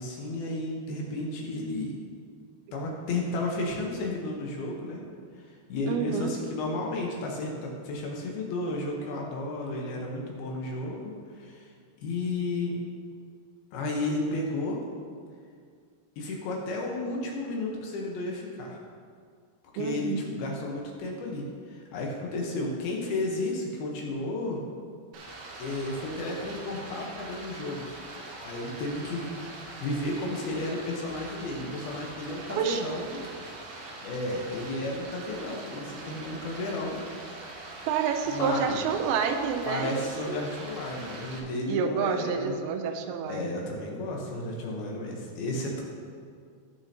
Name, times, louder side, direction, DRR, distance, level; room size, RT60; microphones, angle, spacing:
voice 1, 0.0-2.0 2.7-5.0 5.7-11.7 12.0-12.8 13.7-14.8 16.2-18.8 19.7-24.6 25.6-28.0 28.4-33.2 33.7-37.0 37.5-37.7 38.3-38.8 39.7-42.5 43.3-45.8, left 2 dB, 70° left, -1 dB, 2.8 m, -33 dB
voice 2, 5.8-6.3 19.8-20.3 32.5-32.8 37.9-40.4 41.7-43.6, right 6 dB, 85° right, 6 dB, 2.9 m, -29 dB
Stream, 25.1-41.4, right 2 dB, 65° right, 1.9 m, -43 dB
18.5 x 6.6 x 2.9 m, 2.2 s
omnidirectional pair, 5.0 m